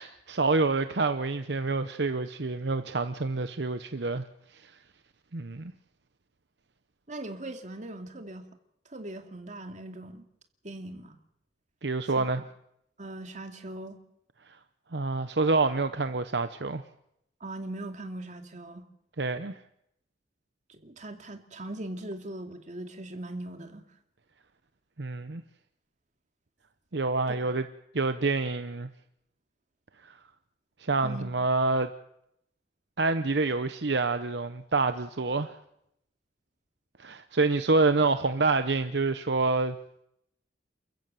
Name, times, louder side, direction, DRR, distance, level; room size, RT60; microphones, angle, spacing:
voice 1, 0.0-4.2 4.6-4.7 5.3-5.7 11.8-12.4 14.9-16.8 19.2-19.6 25.0-25.4 26.9-27.6 27.9-28.9 30.8-31.9 33.0-35.6 37.0-39.8, right 3 dB, 65° right, 0.9 m, -27 dB
voice 2, 7.1-8.5 8.9-10.2 10.6-11.2 12.1-12.3 13.0-14.0 17.4-18.8 20.7-23.9 27.3-27.6 31.0-31.3, right 1 dB, 45° right, 2.5 m, -40 dB
29.0 x 14.5 x 7.6 m
head